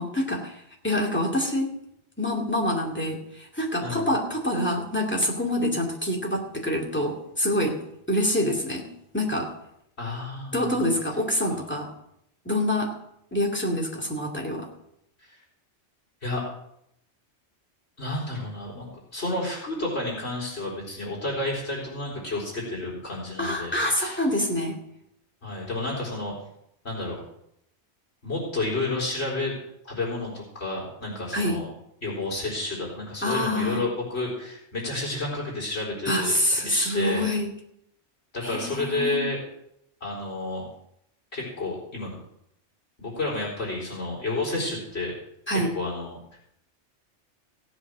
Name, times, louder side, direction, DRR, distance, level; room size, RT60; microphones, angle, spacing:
voice 1, 0.0-1.8 2.2-7.8 8.1-9.5 10.5-11.9 12.4-12.9 13.3-14.7 23.4-24.8 31.3-31.6 33.2-33.8 36.0-37.5 38.4-39.2 45.5-45.7, left 1 dB, 10° left, 0 dB, 2.5 m, -26 dB
voice 2, 3.8-4.1 10.0-10.6 15.2-15.4 16.2-16.4 18.0-24.2 25.4-26.3 26.8-27.2 28.2-29.5 29.8-31.7 32.0-36.3 36.7-37.3 38.3-39.4 40.0-40.6 41.3-42.1 43.0-45.1 45.5-46.2, left 2 dB, 65° left, -3 dB, 4.6 m, -30 dB
16.5 x 7.9 x 6.2 m, 0.76 s
omnidirectional pair, 1.2 m